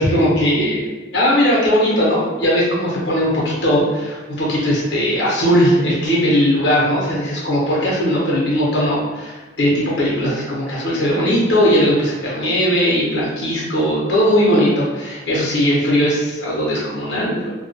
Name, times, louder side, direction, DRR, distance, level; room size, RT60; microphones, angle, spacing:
voice 1, 0.0-17.5, equal, 65° left, -6 dB, 0.8 m, -18 dB
2.2 x 2.1 x 2.8 m, 1.2 s
head